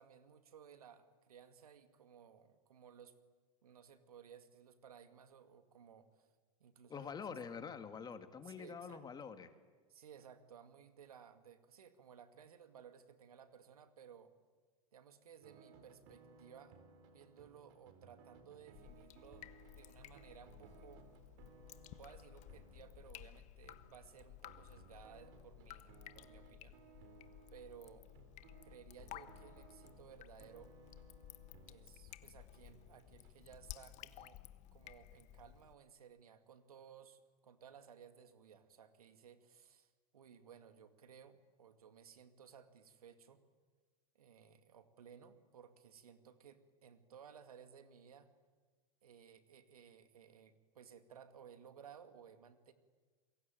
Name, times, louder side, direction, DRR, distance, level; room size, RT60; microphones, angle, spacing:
voice 1, 0.0-3.2 3.6-6.3 6.6-7.1 8.4-9.0 9.9-14.3 14.9-16.8 17.1-19.5 19.8-21.1 21.8-26.8 27.5-28.1 28.6-30.7 31.7-34.4 34.7-43.4 44.1-48.3 49.0-52.7, right 8 dB, 90° right, 9 dB, 2.2 m, -59 dB
voice 2, 6.9-9.5, left 6 dB, 20° left, 8 dB, 2.3 m, -46 dB
sound 1, 15.4-33.6, right 4 dB, 55° right, 4.1 m, -62 dB
Drip, 18.7-35.7, left 14 dB, 40° left, 1.3 m, -56 dB
28.0 x 23.0 x 9.2 m, 1.4 s
hypercardioid pair, 110°, 18 cm